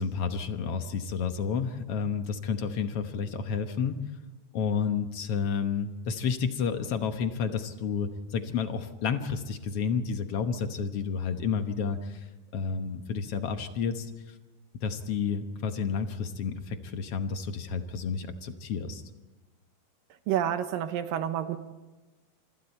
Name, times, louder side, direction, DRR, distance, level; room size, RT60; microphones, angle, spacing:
voice 1, 0.0-4.0 4.5-12.2 12.5-14.1 14.8-19.0, left 6 dB, 65° left, 7 dB, 1.5 m, -30 dB
voice 2, 20.3-21.6, right 10 dB, 80° right, 9 dB, 2.7 m, -29 dB
27.0 x 25.5 x 4.4 m, 1.2 s
omnidirectional pair, 4.1 m